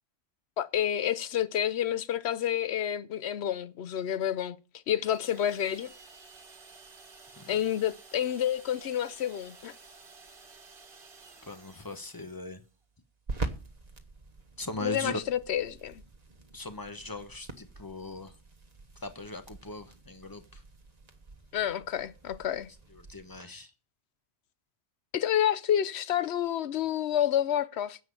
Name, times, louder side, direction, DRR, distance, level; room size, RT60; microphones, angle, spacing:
voice 1, 0.6-4.6 4.9-5.9 7.5-9.7 14.8-16.0 21.5-22.7 25.1-28.0, left 10 dB, 80° left, 1.0 m, -29 dB
sound 1, 5.1-12.7, right 4 dB, 55° right, 1.6 m, -53 dB
sound 2, 11.2-23.4, right 3 dB, 40° right, 1.3 m, -45 dB
voice 2, 11.4-12.6 14.6-15.2 16.5-18.3 19.0-20.6 22.9-23.7, left 2 dB, 20° left, 1.2 m, -39 dB
10.5 x 7.6 x 7.0 m
omnidirectional pair, 1.1 m